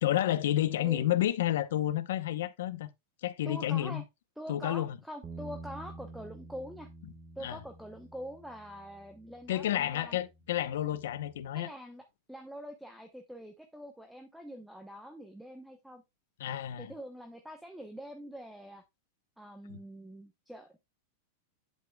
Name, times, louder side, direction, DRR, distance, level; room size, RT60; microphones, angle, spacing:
voice 1, 0.0-2.9 3.2-4.0 4.5-5.0 7.4-7.6 9.5-11.7 16.4-16.9, left 12 dB, 80° left, 0.7 m, -30 dB
voice 2, 3.4-4.0 4.4-6.9 7.4-10.2 11.5-16.0 16.8-18.8 19.4-20.8, equal, ahead, 0.8 m, -45 dB
Bass guitar, 5.2-11.5, right 2 dB, 25° right, 1.1 m, -50 dB
8.2 x 8.1 x 2.2 m
supercardioid pair, 155°, 0 cm